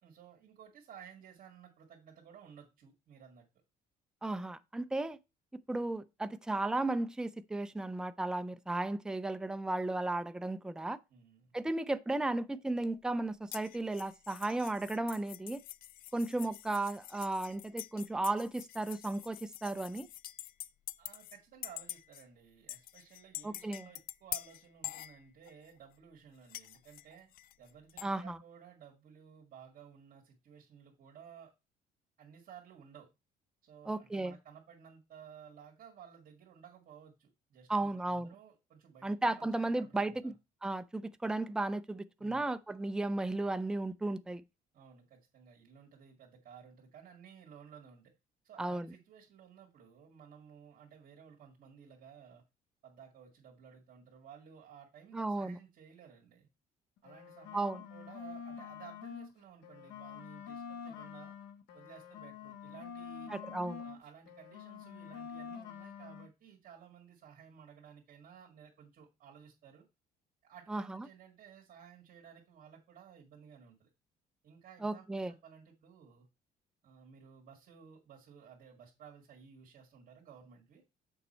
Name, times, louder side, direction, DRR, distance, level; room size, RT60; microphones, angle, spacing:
voice 1, 0.0-3.5 11.1-11.5 21.0-27.3 27.6-31.5 32.2-33.1 33.6-40.3 42.2-42.5 44.7-48.1 48.4-52.4 52.8-56.5 57.0-61.4 61.7-63.3 63.8-69.8 70.4-73.9 74.4-76.3 76.8-80.8, right 7 dB, 55° right, 2.0 m, -56 dB
voice 2, 4.2-5.2 5.5-11.0 11.5-15.6 16.1-20.1 23.4-23.9 28.0-28.4 33.9-34.4 37.7-38.3 39.0-40.4 40.6-44.4 48.6-48.9 55.1-55.6 57.5-57.8 63.3-63.8 70.7-71.1 74.8-75.3, right 2 dB, 5° right, 0.4 m, -35 dB
sound 1, 13.5-21.4 21.6-22.2 22.7-25.7 26.5-28.1, left 14 dB, 60° left, 0.4 m, -46 dB
sound 2, 57.0-59.3 59.6-64.0 64.3-66.3, left 7 dB, 85° left, 1.1 m, -47 dB
6.9 x 5.3 x 4.3 m
cardioid pair, 110°, 17 cm